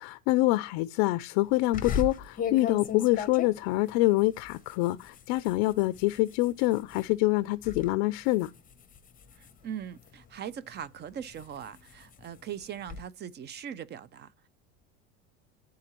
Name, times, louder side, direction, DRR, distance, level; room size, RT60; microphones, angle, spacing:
voice 1, 0.0-8.5, left 18 dB, 65° left, 0.5 m, -26 dB
sound 1, 1.7-7.1 7.5-7.9 8.3-10.3 10.8-13.0, left 6 dB, 20° left, 0.7 m, -38 dB
voice 2, 9.4-14.5, right 9 dB, 30° right, 0.5 m, -40 dB
11.0 x 3.7 x 3.0 m
supercardioid pair, 110°, 38 cm